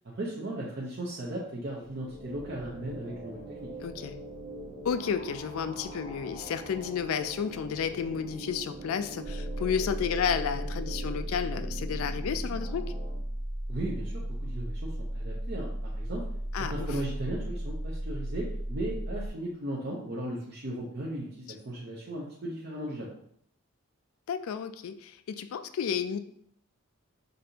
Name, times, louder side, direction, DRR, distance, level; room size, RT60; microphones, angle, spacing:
voice 1, 0.1-3.7 13.7-16.2 16.7-23.1, right 1 dB, 50° right, -4 dB, 0.6 m, -36 dB
sound 1, 1.6-13.1, right 1 dB, 25° right, 1.6 m, -43 dB
voice 2, 3.8-4.2 4.8-12.9 16.5-16.9 24.3-26.2, left 7 dB, 70° left, 11 dB, 0.3 m, -32 dB
sound 2, 9.2-19.3, right 1 dB, 5° left, 0.6 m, -35 dB
5.2 x 2.6 x 2.8 m, 0.68 s
head